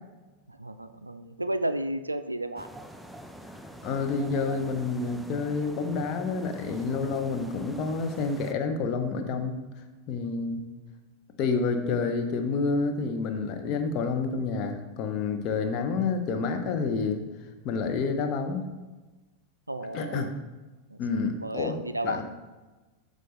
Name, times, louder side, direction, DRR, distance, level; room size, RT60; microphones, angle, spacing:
voice 1, 0.5-2.7 19.7-20.3 20.9-21.0 21.4-22.2, right 1 dB, 85° right, 11 dB, 0.3 m, -32 dB
sound 1, 2.6-8.5, equal, ahead, 0.4 m, -44 dB
voice 2, 3.8-9.6 10.1-10.6 11.4-17.2 17.6-18.7 19.9-20.3 21.0-21.8 22.0-22.2, left 4 dB, 40° left, 5 dB, 0.8 m, -29 dB
7.7 x 5.2 x 3.3 m, 1.2 s
figure-of-eight pair, 90°, 0 cm